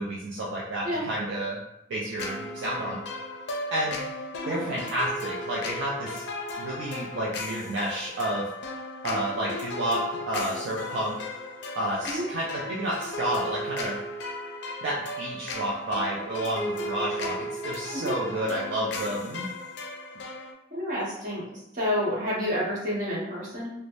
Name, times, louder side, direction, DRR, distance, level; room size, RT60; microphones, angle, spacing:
voice 1, 0.0-1.6 1.9-3.0 3.7-6.2 6.6-8.5 9.0-10.0 10.3-11.3 11.8-14.0 14.8-19.5, right 1 dB, 70° right, -5 dB, 0.4 m, -30 dB
sound 1, 2.2-20.5, left 1 dB, 60° left, 0.4 m, -36 dB
voice 2, 20.7-23.7, left 1 dB, 45° right, -6 dB, 1.1 m, -29 dB
3.2 x 2.1 x 2.5 m, 0.84 s
head